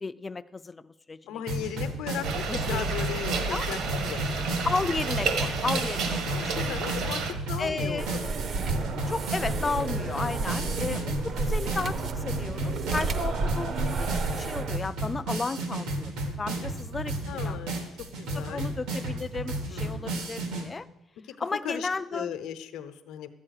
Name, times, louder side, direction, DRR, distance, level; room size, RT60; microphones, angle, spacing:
voice 1, 0.0-1.4 1.8-1.9 2.5-2.9 3.5-3.6 4.6-6.6 7.0-7.2 7.6-8.1 9.1-14.1 14.3-16.1 16.4-17.1 17.4-17.6 18.3-20.9 21.4-22.4, left 3 dB, 15° left, 14 dB, 0.3 m, -33 dB
voice 2, 1.3-4.4 6.3-8.3 10.9-11.3 17.3-17.8 18.2-18.7 19.7-20.2 21.4-23.3, left 10 dB, 75° left, 10 dB, 0.9 m, -37 dB
sound 1, 1.5-20.6, right 1 dB, 85° right, 2.6 m, -33 dB
sound 2, 2.2-7.3, right 4 dB, 60° right, 1.4 m, -30 dB
sound 3, 8.0-14.8, right 3 dB, 40° right, 0.7 m, -31 dB
12.0 x 8.7 x 6.5 m, 0.99 s
cardioid pair, 175°, 0 cm